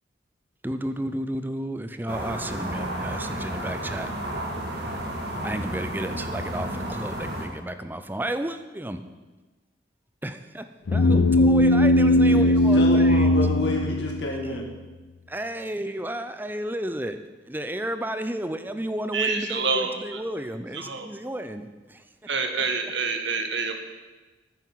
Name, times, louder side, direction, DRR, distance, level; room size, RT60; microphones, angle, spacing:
voice 1, 0.6-4.3 5.4-9.0 10.2-13.4 14.4-14.8 15.3-17.2 17.5-22.0, right 1 dB, 10° right, 9 dB, 0.6 m, -32 dB
sound 1, 2.1-7.5, right 1 dB, 60° right, 2.3 m, -32 dB
sound 2, 10.9-14.6, left 1 dB, 85° left, 0.5 m, -19 dB
voice 2, 12.2-14.6, left 2 dB, 70° left, -1 dB, 2.0 m, -30 dB
voice 3, 19.1-20.2 20.7-21.1 22.3-23.8, right 4 dB, 75° right, 5 dB, 1.5 m, -27 dB
9.9 x 9.2 x 7.5 m, 1.2 s
head